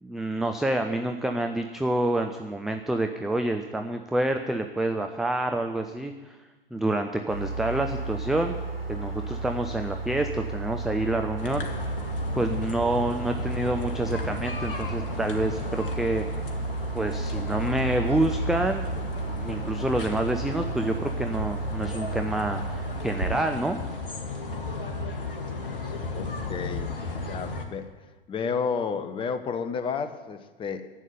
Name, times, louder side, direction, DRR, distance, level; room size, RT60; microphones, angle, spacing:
voice 1, 0.0-6.4 6.7-8.6 8.9-11.7 12.3-16.2 16.9-18.9 19.4-23.8, right 1 dB, ahead, 5 dB, 0.4 m, -28 dB
sound 1, 7.3-23.4, right 3 dB, 90° left, 1.9 m, -33 dB
sound 2, 11.4-27.7, left 3 dB, 65° left, 1.9 m, -35 dB
voice 2, 26.1-27.0 27.3-27.9 28.3-30.9, left 6 dB, 20° left, 10 dB, 0.9 m, -31 dB
11.0 x 8.2 x 9.4 m, 1.2 s
figure-of-eight pair, 95°, 29 cm